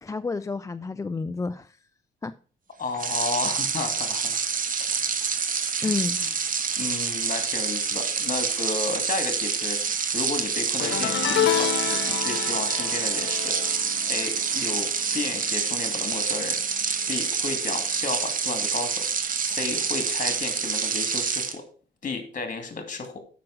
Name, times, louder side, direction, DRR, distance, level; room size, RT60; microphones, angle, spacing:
voice 1, 0.0-1.8 2.2-2.3 5.8-6.2, left 4 dB, 15° left, 0.3 m, -30 dB
voice 2, 2.8-4.4 5.8-6.3 6.8-13.6 14.1-14.9 15.1-16.6 17.1-21.6 22.0-23.2, left 4 dB, 40° left, 2.5 m, -33 dB
sound 1, 2.9-21.6, right 6 dB, 45° right, 1.1 m, -27 dB
sound 2, 10.8-16.2 16.4-16.8 18.1-18.2, left 9 dB, 65° left, 1.2 m, -30 dB
7.6 x 6.0 x 6.0 m
cardioid pair, 90°, 20 cm